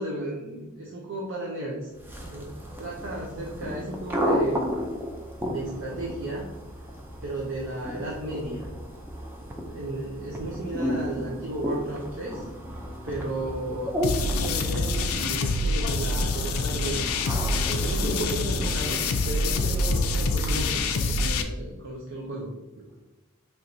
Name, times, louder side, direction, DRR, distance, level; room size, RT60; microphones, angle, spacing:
voice 1, 0.0-4.7 5.4-6.5 7.2-8.7 9.6-12.5 13.0-17.1 17.7-22.9, right 1 dB, 60° right, -2 dB, 0.6 m, -34 dB
sound 1, 2.0-21.3, equal, 10° right, 0.4 m, -34 dB
sound 2, 14.0-21.4, left 2 dB, 80° left, 0.4 m, -26 dB
4.5 x 3.0 x 2.6 m, 1.1 s
head